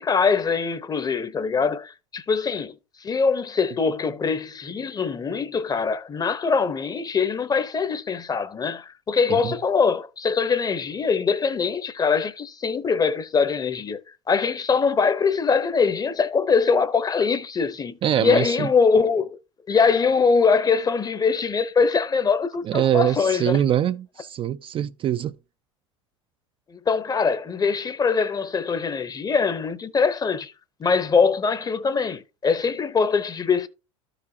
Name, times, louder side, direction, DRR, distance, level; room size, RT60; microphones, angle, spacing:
voice 1, 0.0-14.0 14.3-19.4 19.7-23.6 26.7-30.5 30.8-33.7, left 5 dB, 25° left, 0.8 m, -23 dB
voice 2, 18.0-18.7 22.6-25.4, right 10 dB, 35° right, 0.4 m, -23 dB
13.0 x 5.0 x 2.7 m
hypercardioid pair, 85°, 16 cm